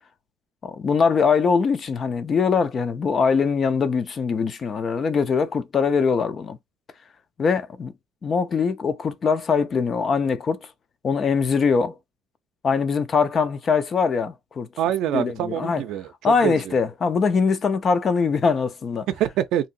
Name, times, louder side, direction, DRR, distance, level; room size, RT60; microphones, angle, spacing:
voice 1, 0.6-6.6 7.4-7.9 8.2-10.7 11.0-11.9 12.6-14.7 15.1-15.8 16.2-19.1, left 5 dB, 25° left, 0.3 m, -22 dB
voice 2, 14.8-16.7 19.1-19.7, right 11 dB, 60° right, 0.5 m, -25 dB
2.9 x 2.7 x 2.6 m
cardioid pair, 180°, 0 cm